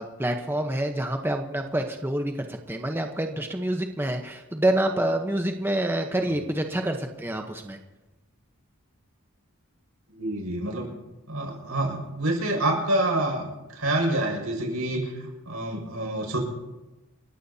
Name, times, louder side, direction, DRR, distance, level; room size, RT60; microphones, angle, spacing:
voice 1, 0.0-7.8, right 1 dB, 10° right, 4 dB, 0.9 m, -27 dB
voice 2, 10.2-10.9 11.3-16.4, right 1 dB, 80° right, 0 dB, 5.9 m, -27 dB
29.5 x 15.0 x 2.8 m, 1.1 s
head